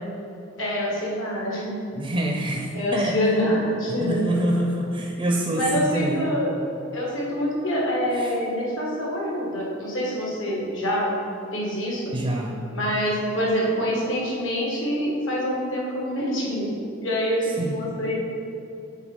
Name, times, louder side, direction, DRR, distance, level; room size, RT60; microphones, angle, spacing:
voice 1, 0.6-1.7 2.7-4.3 5.5-6.6 6.9-11.1 11.5-12.1 12.7-16.7 17.0-18.2, equal, 70° left, -4 dB, 1.6 m, -25 dB
voice 2, 1.9-3.2 4.0-6.3 8.2-8.3 12.1-12.5 17.6-17.8, right 1 dB, 25° right, 0 dB, 0.5 m, -26 dB
7.3 x 3.9 x 5.3 m, 2.6 s
head